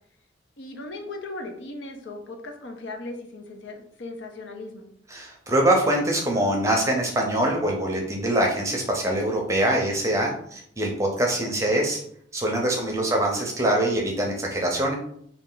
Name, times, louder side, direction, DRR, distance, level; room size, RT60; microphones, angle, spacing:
voice 1, 0.6-4.9 12.8-13.1, left 2 dB, 70° left, 4 dB, 0.6 m, -38 dB
voice 2, 5.1-12.0 12.3-14.9, right 1 dB, 15° right, 0 dB, 0.6 m, -24 dB
3.2 x 2.3 x 3.8 m, 0.67 s
head